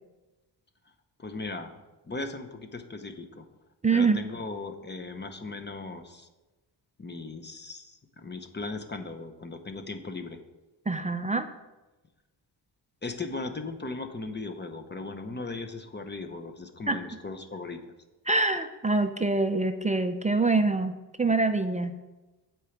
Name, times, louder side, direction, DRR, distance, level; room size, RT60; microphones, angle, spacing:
voice 1, 1.2-1.8 2.0-3.4 3.9-6.3 7.0-10.4 13.0-17.8, left 3 dB, 25° left, 8 dB, 0.8 m, -37 dB
voice 2, 3.8-4.2 10.9-11.5 16.9-17.0 18.3-20.9 21.2-22.0, right 3 dB, 20° right, 8 dB, 0.4 m, -25 dB
8.3 x 4.6 x 7.1 m, 1.1 s
cardioid pair, 110°, 44 cm